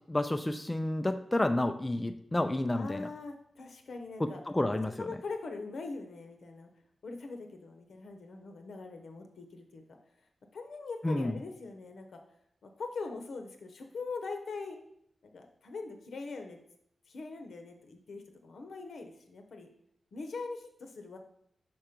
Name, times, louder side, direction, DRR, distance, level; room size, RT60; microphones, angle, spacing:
voice 1, 0.1-3.1 4.2-4.9 11.0-11.4, left 1 dB, 15° left, 7 dB, 0.3 m, -30 dB
voice 2, 2.7-4.4 5.0-6.7 7.0-10.0 10.5-12.2 12.6-14.8 15.2-16.6 17.1-19.7 20.1-21.2, left 3 dB, 75° left, 4 dB, 0.9 m, -42 dB
6.0 x 4.3 x 5.1 m, 0.72 s
wide cardioid pair, 140°, 0 cm